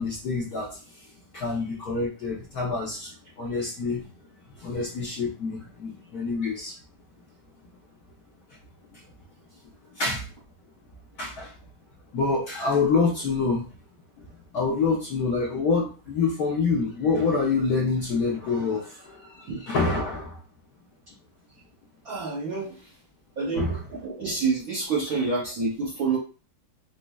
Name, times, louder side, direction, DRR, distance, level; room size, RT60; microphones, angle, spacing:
voice 1, 0.0-4.1 4.5-6.8 8.5-8.6 8.9-9.0 9.9-10.3 11.2-11.5 12.1-13.8 14.2-20.4 23.5-23.8, left 4 dB, 70° left, -5 dB, 0.9 m, -27 dB
voice 2, 22.0-22.9 23.4-23.7 24.0-26.2, right 4 dB, 65° right, -5 dB, 0.9 m, -28 dB
5.0 x 2.0 x 2.2 m, 0.35 s
omnidirectional pair, 2.4 m